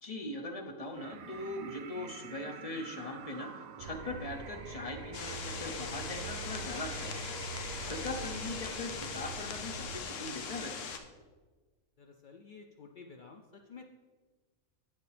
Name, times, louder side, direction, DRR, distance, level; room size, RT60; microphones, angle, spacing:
voice 1, 0.0-3.5 3.8-10.9, left 2 dB, 35° left, 4 dB, 0.6 m, -41 dB
sound 1, 0.9-9.9, right 6 dB, 80° right, 1.0 m, -48 dB
sound 2, 3.8-10.0, right 4 dB, 45° right, 0.8 m, -45 dB
sound 3, 5.1-11.0, left 6 dB, 70° left, 1.0 m, -41 dB
voice 2, 12.0-13.8, left 5 dB, 90° left, 3 dB, 0.4 m, -52 dB
9.4 x 7.1 x 3.3 m, 1.3 s
omnidirectional pair, 1.4 m